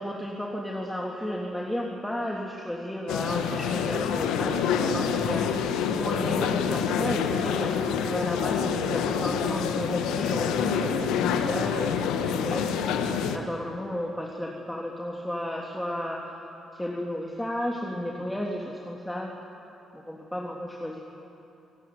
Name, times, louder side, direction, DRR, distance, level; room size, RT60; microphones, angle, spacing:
voice 1, 0.0-13.0 13.3-16.4 16.7-19.3 19.9-21.0, equal, 5° left, -2 dB, 3.4 m, -33 dB
sound 1, 3.1-13.4, left 7 dB, 75° left, 1.4 m, -27 dB
26.5 x 16.5 x 9.9 m, 2.8 s
hypercardioid pair, 45°, 0 cm